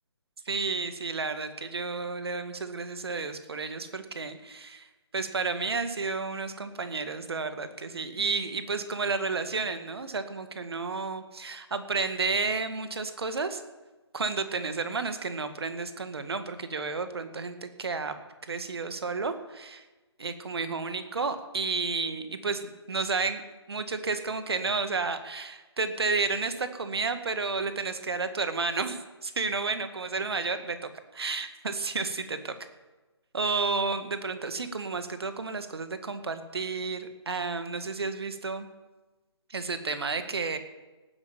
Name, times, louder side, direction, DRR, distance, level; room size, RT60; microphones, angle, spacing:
voice 1, 0.5-4.9 5.1-13.6 14.1-19.8 20.2-22.6 22.9-30.8 31.1-32.5 33.3-38.7 39.5-40.6, right 4 dB, 65° right, 9 dB, 1.9 m, -31 dB
18.0 x 10.5 x 7.3 m, 1.2 s
figure-of-eight pair, 145°, 14 cm